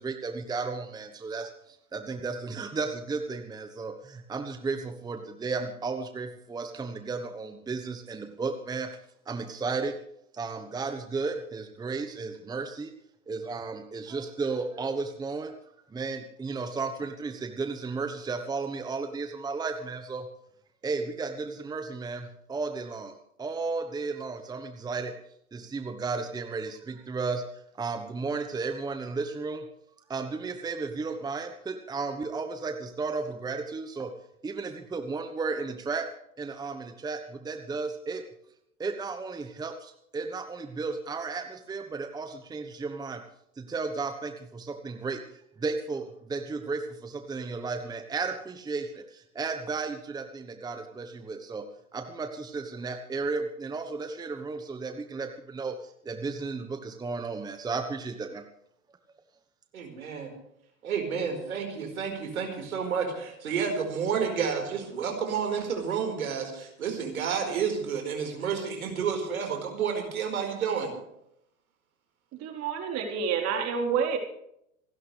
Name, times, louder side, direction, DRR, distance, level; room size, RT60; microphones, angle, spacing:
voice 1, 0.0-8.9 9.3-10.0 10.3-12.9 13.3-15.5 15.9-20.3 20.8-23.1 23.4-25.1 25.5-29.7 30.1-34.1 34.4-36.1 36.4-38.2 38.8-43.2 43.6-45.2 45.6-51.7 51.9-58.4, right 4 dB, 10° right, 8 dB, 1.1 m, -34 dB
voice 2, 59.7-60.3 60.8-70.9, right 6 dB, 75° right, 3 dB, 4.9 m, -30 dB
voice 3, 72.4-74.2, right 6 dB, 35° right, 2 dB, 4.0 m, -28 dB
27.5 x 12.0 x 3.4 m, 0.77 s
hypercardioid pair, 110°, 43 cm